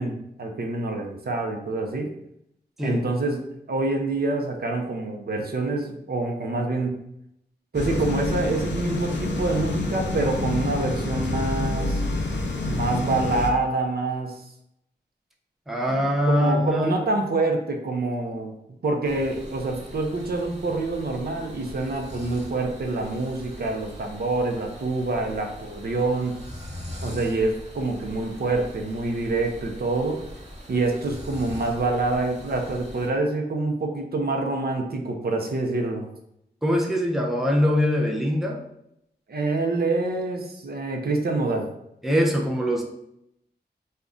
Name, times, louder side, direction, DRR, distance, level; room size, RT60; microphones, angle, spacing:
voice 1, 0.0-2.1 2.8-7.0 7.7-12.0 12.7-14.4 15.9-18.6 18.8-26.4 27.0-30.2 30.7-36.1 39.3-41.7, right 2 dB, 60° right, 2 dB, 0.5 m, -26 dB
sound 1, 7.7-13.5, left 2 dB, 80° left, 0.5 m, -28 dB
voice 2, 15.7-16.9 36.6-38.6 42.0-42.8, equal, ahead, 0 dB, 0.5 m, -22 dB
sound 2, 19.0-33.1, equal, 40° right, 0.9 m, -41 dB
2.5 x 2.1 x 3.5 m, 0.78 s
wide cardioid pair, 65°, 18 cm